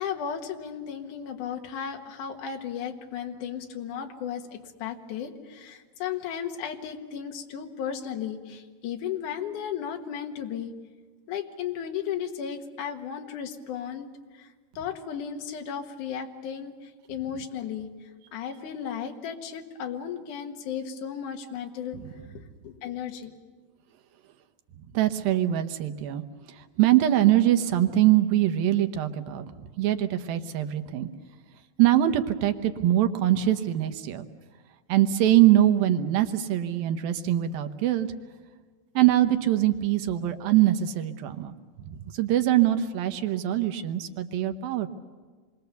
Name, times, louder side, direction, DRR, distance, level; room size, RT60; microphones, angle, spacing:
voice 1, 0.0-10.7 11.3-14.1 14.3-14.5 14.8-17.9 18.3-22.0 22.3-23.3, left 8 dB, 65° left, 4 dB, 2.8 m, -35 dB
voice 2, 24.9-26.2 26.8-31.1 31.8-34.3 34.9-38.1 39.0-41.6 41.9-44.9, right 13 dB, 80° right, 8 dB, 2.8 m, -23 dB
28.0 x 22.5 x 6.9 m, 1.4 s
omnidirectional pair, 4.1 m